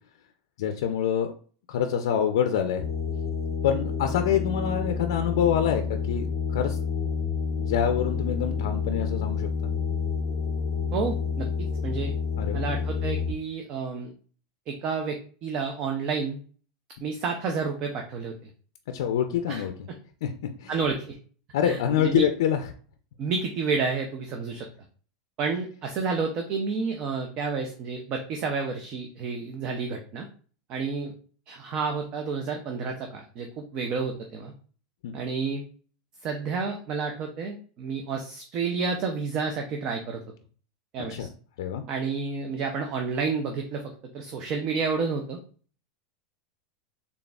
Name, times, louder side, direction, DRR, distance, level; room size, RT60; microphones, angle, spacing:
voice 1, 0.6-1.3 1.7-2.8 3.6-6.8 7.5-9.5 12.4-12.6 18.9-19.7 20.2-20.3 20.6-20.7 21.5-22.6 35.0-35.1 41.1-41.3 41.6-41.8, left 9 dB, 75° left, 7 dB, 0.4 m, -26 dB
sound 1, 2.8-13.3, left 5 dB, 30° left, 0.7 m, -29 dB
voice 2, 10.9-11.5 11.8-12.1 12.5-14.1 14.7-16.4 17.0-18.5 19.5-19.6 20.7-21.2 21.6-22.2 23.2-24.7 25.4-30.3 30.7-31.1 31.5-34.5 35.1-35.6 36.2-40.2 40.9-41.3 41.9-43.8 44.1-45.4, right 5 dB, 30° right, 4 dB, 0.4 m, -30 dB
4.0 x 3.4 x 2.3 m, 0.42 s
supercardioid pair, 170°, 2 cm